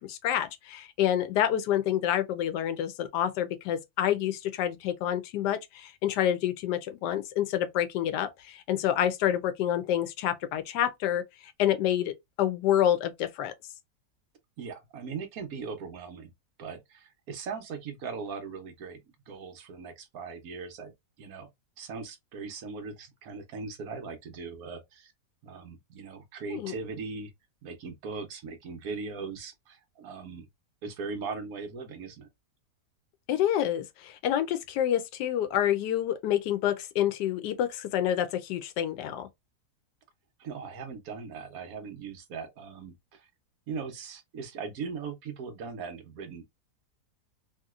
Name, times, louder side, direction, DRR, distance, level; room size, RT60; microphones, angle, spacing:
voice 1, 0.0-11.2 11.6-13.5 26.5-26.7 33.3-39.3, left 11 dB, 90° left, 1.2 m, -28 dB
voice 2, 14.6-16.3 16.6-20.9 21.2-21.5 21.8-25.1 25.4-27.3 27.6-30.5 30.8-32.3 40.4-43.3 43.7-46.4, right 5 dB, 65° right, 1.1 m, -39 dB
3.0 x 2.8 x 2.3 m
omnidirectional pair, 1.8 m